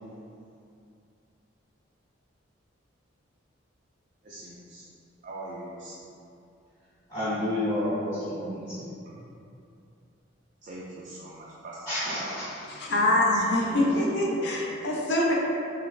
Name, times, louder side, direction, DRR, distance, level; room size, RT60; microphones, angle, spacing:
voice 1, 4.2-4.9 5.2-6.1 9.1-9.2 10.6-12.8 13.6-14.8, right 1 dB, 40° right, -7 dB, 0.3 m, -41 dB
voice 2, 7.1-8.9 11.9-12.5, left 1 dB, 20° left, -15 dB, 0.8 m, -30 dB
voice 3, 12.7-15.3, left 1 dB, 55° left, -3 dB, 0.5 m, -24 dB
3.2 x 2.9 x 2.4 m, 2.6 s
head